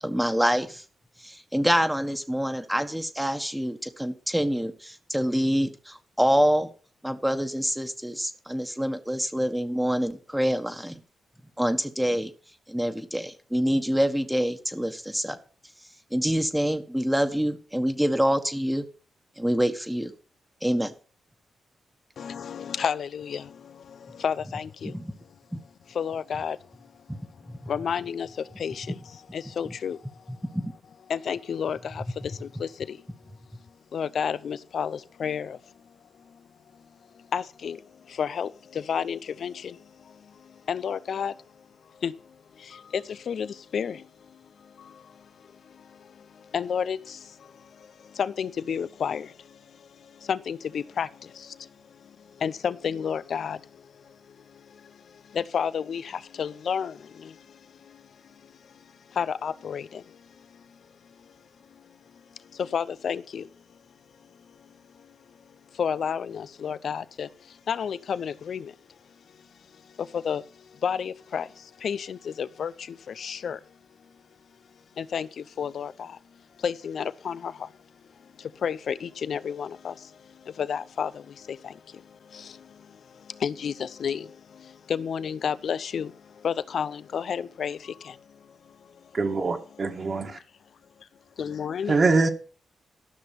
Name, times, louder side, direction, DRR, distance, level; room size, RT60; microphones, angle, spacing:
voice 1, 0.0-0.8 1.2-6.7 7.0-11.0 11.6-12.3 12.7-15.4 16.1-18.8 19.4-20.1 20.6-20.9 24.8-25.1 25.5-25.6 27.1-27.2 30.5-30.7, equal, 5° right, 1.4 m, -26 dB
voice 2, 22.2-24.9 25.9-26.6 27.7-28.9 29.3-30.0 31.1-33.0 33.9-35.6 37.3-37.8 38.1-39.8 40.7-41.3 42.0-42.1 42.6-44.1 44.8-45.1 46.5-47.5 48.1-49.3 50.2-51.7 52.4-53.6 54.8-54.9 55.3-57.4 57.9-58.0 59.1-60.2 62.5-63.5 65.8-67.3 67.7-68.7 70.0-70.4 70.8-73.6 75.0-76.2 76.6-77.7 78.4-80.1 80.4-82.0 82.3-82.7 83.3-88.2 90.2-90.4 91.4-92.0, left 7 dB, 65° left, 0.6 m, -31 dB
voice 3, 89.1-90.4 91.9-92.3, right 3 dB, 45° right, 1.9 m, -23 dB
13.5 x 6.1 x 5.9 m
cardioid pair, 65°, 0 cm